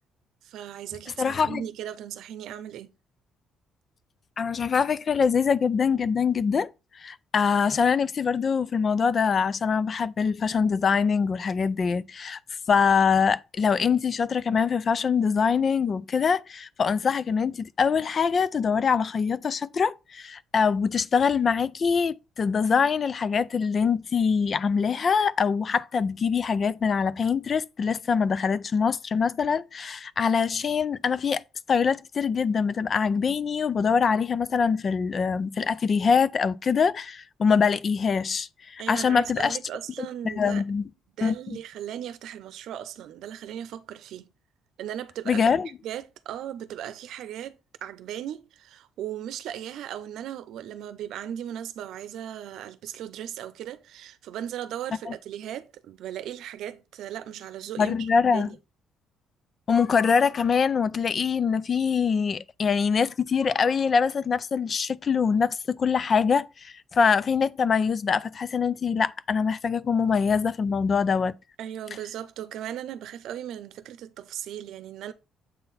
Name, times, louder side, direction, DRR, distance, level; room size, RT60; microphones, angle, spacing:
voice 1, 0.4-2.9 38.8-40.6 41.2-44.3 44.8-45.5 45.8-58.6 71.6-75.1, right 10 dB, 70° right, 0.7 m, -37 dB
voice 2, 1.2-1.6 4.4-12.4 12.7-31.4 31.7-39.6 40.0-40.9 41.2-41.3 45.3-45.7 55.1-55.2 57.8-58.5 59.7-71.3, left 6 dB, 30° left, 0.3 m, -24 dB
7.8 x 3.9 x 4.1 m
cardioid pair, 160°, 0 cm